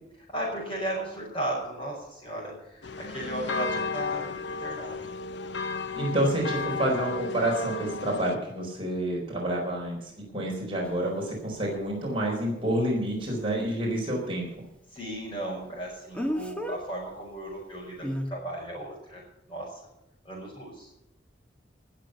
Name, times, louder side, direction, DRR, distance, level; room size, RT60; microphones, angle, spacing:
voice 1, 0.3-5.0 14.9-19.2 19.5-19.8 20.2-20.9, right 1 dB, 25° left, -7 dB, 5.8 m, -35 dB
sound 1, 2.8-8.4, left 4 dB, 65° left, 0.8 m, -33 dB
voice 2, 5.9-14.5, right 1 dB, 30° right, -2 dB, 4.5 m, -28 dB
Speech, 10.8-10.9 16.1-16.8 18.0-18.3, equal, 5° left, 1.5 m, -30 dB
19.5 x 7.7 x 6.8 m, 0.89 s
head